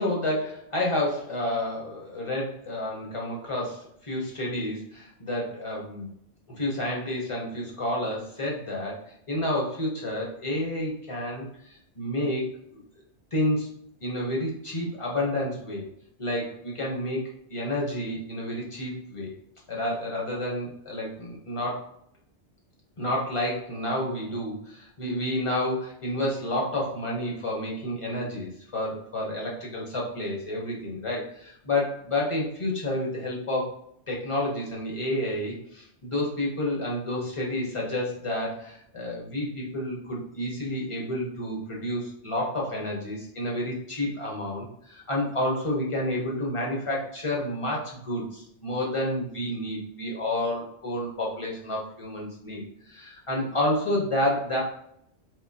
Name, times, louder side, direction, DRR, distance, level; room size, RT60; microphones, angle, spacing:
voice 1, 0.0-6.1 6.6-9.0 9.3-12.8 13.3-13.7 14.0-15.8 16.2-17.2 17.5-19.3 19.7-21.9 23.0-33.7 34.1-54.6, left 1 dB, 30° left, -2 dB, 0.9 m, -30 dB
3.8 x 2.7 x 2.7 m, 0.71 s
omnidirectional pair, 1.2 m